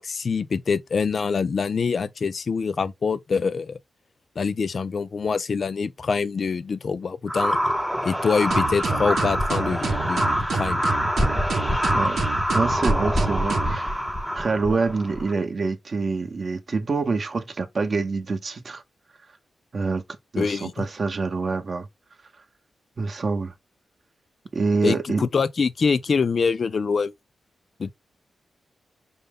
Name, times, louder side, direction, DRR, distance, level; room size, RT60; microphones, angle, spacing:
voice 1, 0.0-3.8 4.4-7.6 8.0-10.8 20.4-20.9 24.8-27.1 27.8-27.9, left 5 dB, 50° left, 0.4 m, -25 dB
sound 1, 7.3-15.3, equal, ahead, 0.5 m, -25 dB
sound 2, 8.5-13.8, right 4 dB, 80° right, 0.8 m, -28 dB
voice 2, 12.5-14.0 14.3-18.8 19.7-20.0 20.3-21.9 23.0-23.5 24.5-25.2, right 4 dB, 45° right, 0.7 m, -26 dB
5.4 x 2.0 x 3.4 m
wide cardioid pair, 120°, 0 cm